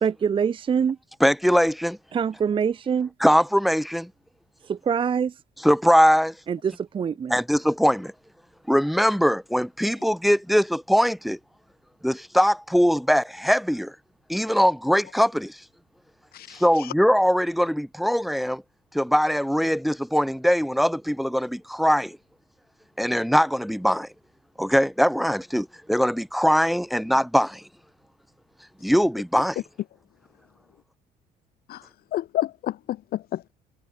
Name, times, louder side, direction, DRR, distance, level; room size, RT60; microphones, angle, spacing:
voice 1, 0.0-1.0 2.1-3.1 4.7-5.3 6.5-7.4, right 7 dB, 30° right, 0.6 m, -24 dB
voice 2, 1.2-2.0 3.2-4.1 5.6-6.3 7.3-8.1 8.7-11.4 12.0-13.9 14.3-15.6 16.5-18.6 18.9-22.2 23.0-24.1 24.6-27.6 28.8-29.6, equal, ahead, 1.1 m, -21 dB
voice 3, 32.1-33.5, left 13 dB, 65° left, 1.1 m, -29 dB
cardioid pair, 110°, 17 cm